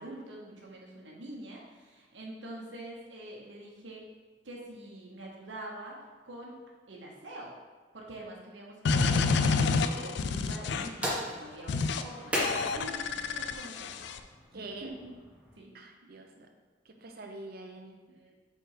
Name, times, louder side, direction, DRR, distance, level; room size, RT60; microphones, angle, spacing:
voice 1, 0.0-4.0 4.4-6.6 6.9-7.5 7.9-14.0 14.5-15.1 15.6-15.7 18.1-18.4, right 1 dB, 75° right, -2 dB, 1.1 m, -45 dB
sound 1, 8.9-11.0 11.7-12.0 12.4-14.2, left 4 dB, 65° left, 0.4 m, -28 dB
sound 2, 10.5-15.6, equal, 10° right, 1.4 m, -38 dB
voice 2, 14.5-14.9 15.7-16.3 16.9-18.0, right 2 dB, 55° right, 4 dB, 0.7 m, -44 dB
5.8 x 3.4 x 4.9 m, 1.3 s
head